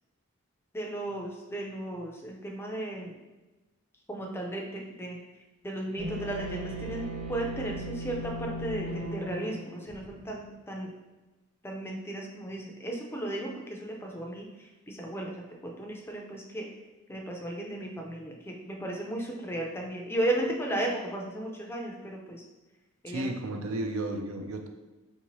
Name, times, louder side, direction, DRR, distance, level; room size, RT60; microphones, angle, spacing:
voice 1, 0.7-3.2 4.1-5.2 5.6-10.9 11.6-15.3 15.6-16.7 17.1-22.4 23.0-23.3, right 1 dB, 10° left, 0 dB, 0.4 m, -35 dB
sound 1, 6.0-10.2, right 1 dB, 35° right, 0.8 m, -37 dB
voice 2, 23.1-24.7, right 1 dB, 70° right, 4 dB, 0.4 m, -33 dB
4.5 x 2.7 x 3.0 m, 1.1 s
head